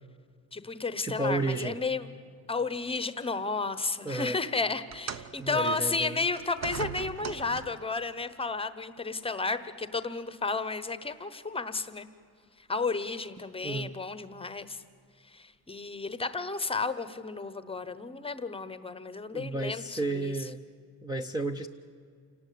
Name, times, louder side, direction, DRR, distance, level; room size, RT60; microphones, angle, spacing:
voice 1, 0.5-2.1 2.5-12.1 12.6-14.8 15.3-20.3, left 3 dB, 15° left, 13 dB, 1.0 m, -32 dB
voice 2, 1.0-1.8 4.0-4.4 5.4-6.2 13.6-13.9 19.3-20.6 21.0-21.7, right 2 dB, 10° right, 7 dB, 0.7 m, -32 dB
sound 1, 4.9-8.0 8.9-9.1 10.0-10.1, right 8 dB, 45° right, 1.0 m, -40 dB
28.5 x 18.5 x 9.4 m, 2.2 s
cardioid pair, 170°, 39 cm